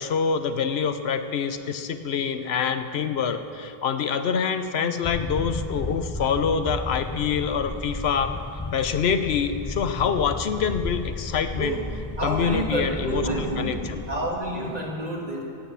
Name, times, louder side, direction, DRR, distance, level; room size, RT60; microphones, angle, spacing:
voice 1, 0.0-8.4 8.7-11.8 12.2-14.0, left 6 dB, 75° left, 9 dB, 1.0 m, -26 dB
sound 1, 5.0-14.3, left 2 dB, 20° left, 0.5 m, -34 dB
voice 2, 12.2-15.4, right 1 dB, 40° right, -2 dB, 2.2 m, -29 dB
16.5 x 9.0 x 7.0 m, 2.6 s
omnidirectional pair, 1.1 m